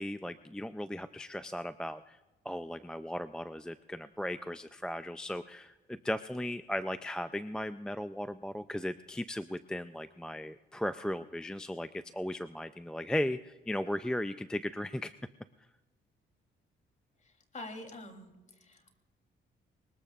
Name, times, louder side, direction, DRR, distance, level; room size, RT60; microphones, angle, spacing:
voice 1, 0.0-2.2 2.4-15.1, left 1 dB, 5° left, 11 dB, 0.5 m, -36 dB
voice 2, 17.5-18.3 18.6-19.0, left 2 dB, 40° left, 4 dB, 3.4 m, -45 dB
24.0 x 21.0 x 2.5 m, 1.1 s
cardioid pair, 90°, 20 cm